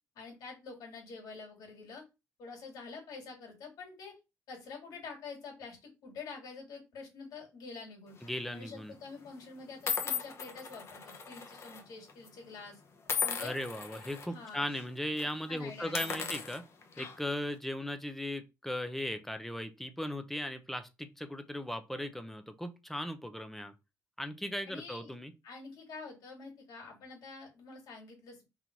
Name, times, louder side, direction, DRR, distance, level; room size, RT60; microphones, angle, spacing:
voice 1, 0.2-2.0 2.4-4.1 4.5-8.1 8.5-12.8 13.2-13.6 14.3-14.7 15.4-16.3 24.7-25.1 25.4-28.4, left 4 dB, 75° left, 2.4 m, -47 dB
sound 1, 8.2-8.5 9.2-9.3 9.9-11.8 12.1-12.3 13.1-14.3 14.7-14.8 15.1-15.3 15.8-17.4, left 6 dB, 45° left, 1.0 m, -37 dB
voice 2, 8.2-8.9 13.4-16.6 17.0-23.7 24.2-25.3, left 1 dB, 5° left, 0.7 m, -37 dB
3.9 x 2.9 x 4.5 m
cardioid pair, 115°, 6 cm